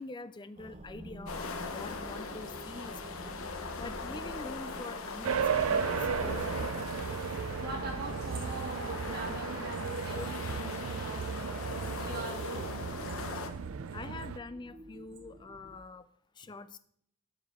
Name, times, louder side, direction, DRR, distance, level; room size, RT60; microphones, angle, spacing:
voice 1, 0.0-3.3 3.7-6.7 10.1-10.3 13.9-16.1 16.4-16.8, left 3 dB, 20° left, 13 dB, 0.4 m, -45 dB
sound 1, 0.6-15.8, right 1 dB, 30° right, 0.8 m, -49 dB
sound 2, 1.3-13.5, left 4 dB, 80° left, 0.9 m, -40 dB
sound 3, 5.2-14.4, right 6 dB, 75° right, 0.4 m, -35 dB
voice 2, 7.1-11.6 11.9-12.7 13.0-13.1 13.5-13.6, right 2 dB, 45° right, 0 dB, 2.1 m, -43 dB
12.0 x 6.5 x 3.6 m, 0.66 s
head